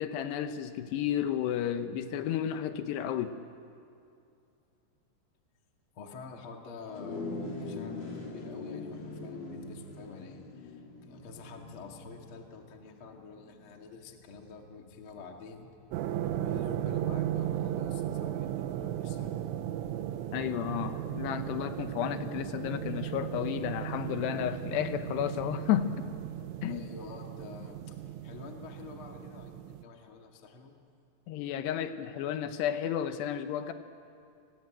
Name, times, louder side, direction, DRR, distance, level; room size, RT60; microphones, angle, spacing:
voice 1, 0.0-3.4 20.3-25.9 26.6-26.9 31.3-33.7, left 10 dB, 75° left, 9 dB, 2.6 m, -32 dB
voice 2, 5.9-15.7 16.3-19.3 26.6-30.7, left 4 dB, 50° left, 2 dB, 1.6 m, -48 dB
sound 1, 6.9-16.5, left 3 dB, 30° left, 2.5 m, -43 dB
sound 2, 15.9-29.8, right 11 dB, 90° right, 3.4 m, -36 dB
29.5 x 20.0 x 9.0 m, 2.5 s
omnidirectional pair, 5.6 m